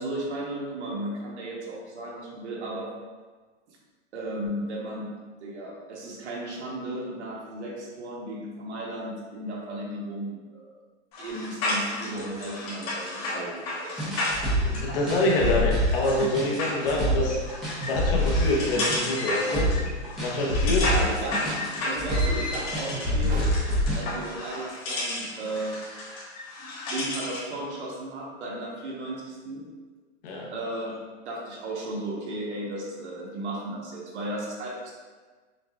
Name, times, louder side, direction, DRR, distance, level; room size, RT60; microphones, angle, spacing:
voice 1, 0.0-2.9 3.7-3.8 4.1-5.1 5.4-10.8 11.2-14.2 20.4-20.5 20.7-21.6 21.8-23.5 23.9-25.8 26.9-29.6 30.5-31.0 31.2-34.9, right 1 dB, 70° right, -3 dB, 1.3 m, -35 dB
sound 1, 11.1-27.5, left 2 dB, 30° left, 1.3 m, -33 dB
sound 2, 14.0-24.1, equal, ahead, 0.5 m, -26 dB
voice 2, 14.7-17.4 17.8-19.7 20.2-20.9 30.2-30.5, left 1 dB, 55° left, -2 dB, 0.9 m, -26 dB
6.2 x 2.3 x 2.4 m, 1.4 s
hypercardioid pair, 155°, 35 cm